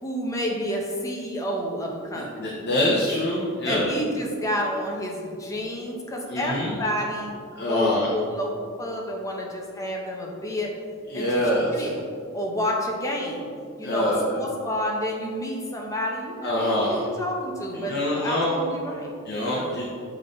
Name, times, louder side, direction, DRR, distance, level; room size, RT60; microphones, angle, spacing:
voice 1, 0.0-2.5 3.7-7.4 7.7-10.7 11.1-12.0 12.3-13.5 13.8-19.1 19.5-19.8, equal, 15° left, -1 dB, 0.8 m, -30 dB
voice 2, 2.1-3.9 6.3-6.8 7.5-8.1 11.1-11.9 13.8-14.4 16.4-17.0 17.7-18.6 19.2-19.8, left 1 dB, 50° left, -4 dB, 0.8 m, -25 dB
7.3 x 3.8 x 3.9 m, 2.2 s
head